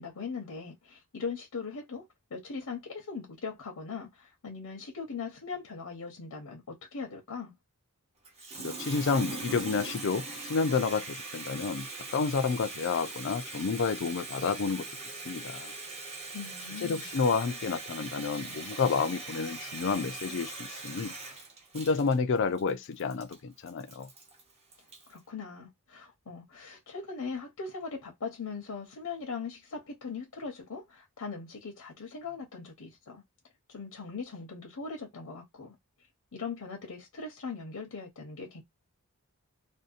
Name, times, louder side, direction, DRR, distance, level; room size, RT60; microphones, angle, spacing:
voice 1, 0.0-7.5 16.3-17.1 25.1-33.2 33.7-35.8 36.3-38.6, left 5 dB, 80° left, 0.8 m, -40 dB
Water tap faucet, 8.2-25.2, right 3 dB, 30° right, 0.7 m, -41 dB
voice 2, 8.6-14.8 15.3-15.7 16.8-21.1 21.7-24.1, left 5 dB, 55° left, 0.4 m, -30 dB
2.6 x 2.1 x 2.4 m
head